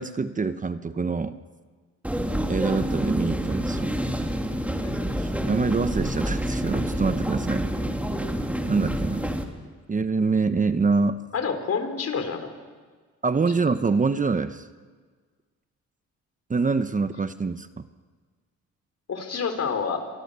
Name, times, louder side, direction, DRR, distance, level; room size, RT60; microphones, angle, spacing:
voice 1, 0.0-1.4 2.5-3.9 5.2-7.7 8.7-9.2 9.9-11.2 13.2-14.7 16.5-17.7, right 4 dB, 25° right, 11 dB, 1.1 m, -25 dB
sound 1, 2.0-9.4, equal, 5° right, 3.2 m, -28 dB
voice 2, 11.3-12.5 19.1-20.0, left 6 dB, 55° left, 7 dB, 4.5 m, -28 dB
29.0 x 24.5 x 6.9 m, 1.5 s
cardioid pair, 90°, 30 cm